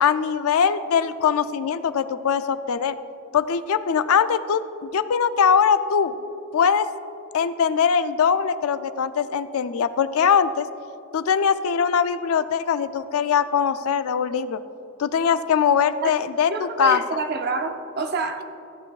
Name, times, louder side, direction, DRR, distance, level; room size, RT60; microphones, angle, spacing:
voice 1, 0.0-3.0 3.3-6.1 6.5-6.9 7.3-10.7 11.1-14.6 15.0-17.0, left 7 dB, 80° left, 13 dB, 0.4 m, -21 dB
voice 2, 16.5-18.4, right 3 dB, 45° right, 6 dB, 0.7 m, -27 dB
14.5 x 8.6 x 2.4 m, 2.7 s
head